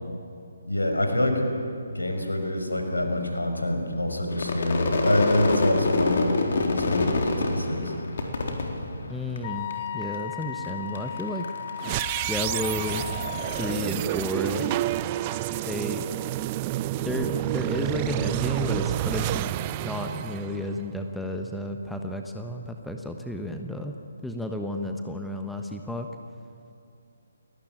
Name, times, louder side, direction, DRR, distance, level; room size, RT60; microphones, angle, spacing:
voice 1, 0.6-1.5 1.9-7.9, left 1 dB, 75° left, 4 dB, 6.1 m, -26 dB
Crowd / Fireworks, 4.3-9.7 10.0-10.7 10.9-14.5, left 3 dB, 50° left, 3.9 m, -27 dB
voice 2, 9.1-11.5 12.3-13.0 13.6-14.7 15.6-16.1 17.0-23.9 24.2-26.1, left 1 dB, ahead, 3 dB, 1.3 m, -32 dB
Wind instrument woodwind instrument, 9.4-13.8, left 9 dB, 30° left, 1.2 m, -36 dB
sound 1, 11.8-21.0, right 15 dB, 25° right, 0.6 m, -29 dB
30.0 x 21.0 x 9.0 m, 2.4 s
figure-of-eight pair, 140°, 0 cm